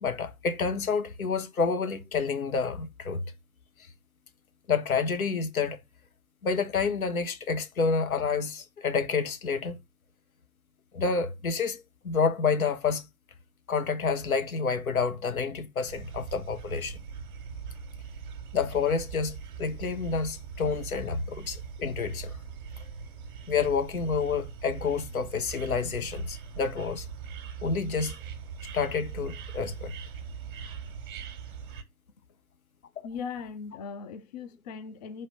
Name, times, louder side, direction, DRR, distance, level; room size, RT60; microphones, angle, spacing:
voice 1, 0.0-3.2 4.7-5.8 6.4-9.8 10.9-13.1 13.7-17.0 18.5-22.4 23.5-27.1 27.6-28.2 28.7-29.9, left 5 dB, 70° left, 1.4 m, -29 dB
sound 1, 15.9-31.8, right 6 dB, 35° right, 1.4 m, -41 dB
voice 2, 33.0-35.3, left 6 dB, 30° left, 0.5 m, -39 dB
5.7 x 4.2 x 5.0 m
figure-of-eight pair, 130°, 43 cm